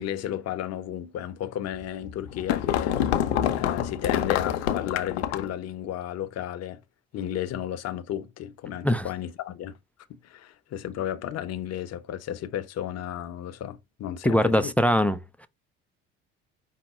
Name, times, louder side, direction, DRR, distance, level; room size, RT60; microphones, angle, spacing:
voice 1, 0.0-6.8 7.1-9.8 10.1-14.7, left 11 dB, 50° left, 0.8 m, -33 dB
sound 1, 1.8-5.6, left 10 dB, 85° left, 0.6 m, -26 dB
voice 2, 14.2-15.5, equal, 5° left, 0.4 m, -22 dB
5.5 x 2.1 x 4.2 m
hypercardioid pair, 60°, 32 cm